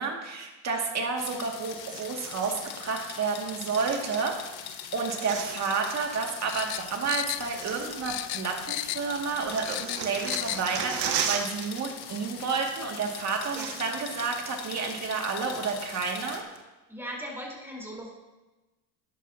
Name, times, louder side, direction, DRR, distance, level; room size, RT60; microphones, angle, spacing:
voice 1, 0.0-4.4 4.9-16.4, right 5 dB, 35° right, 1 dB, 2.3 m, -30 dB
sound 1, 1.2-16.4, left 8 dB, 50° left, 1.4 m, -42 dB
sound 2, 1.7-2.7 3.5-4.6 4.8-6.1 6.9-7.0 7.4-8.5 8.8-11.8 12.1-12.3 13.0-13.1 13.3-14.1 14.5-14.6 15.1-16.0 16.5-16.6, right 7 dB, 55° right, 1.4 m, -37 dB
sound 3, 6.5-7.8 8.0-9.2 9.5-10.7 11.0-11.1, left 19 dB, 70° left, 0.5 m, -33 dB
voice 2, 13.5-13.8 16.9-18.1, equal, 5° right, -3 dB, 4.2 m, -39 dB
13.5 x 11.0 x 2.9 m, 1.1 s
supercardioid pair, 115°, 48 cm